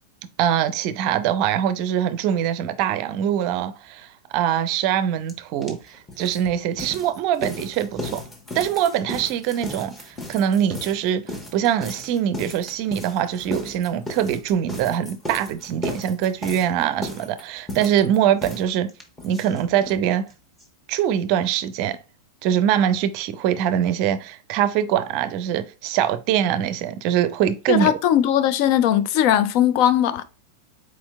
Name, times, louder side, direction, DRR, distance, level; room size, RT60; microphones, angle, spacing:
voice 1, 0.4-8.2 8.5-11.2 11.5-18.9 19.2-20.3 20.9-22.0 22.4-27.9, right 10 dB, 45° right, 0.5 m, -23 dB
sound 1, 5.3-5.4 5.6-20.0 20.3-20.4 20.6-20.7 21.0-21.1, left 1 dB, 10° left, 1.3 m, -35 dB
voice 2, 27.7-30.2, left 11 dB, 45° left, 0.4 m, -19 dB
4.3 x 4.3 x 2.3 m
figure-of-eight pair, 90°, 0 cm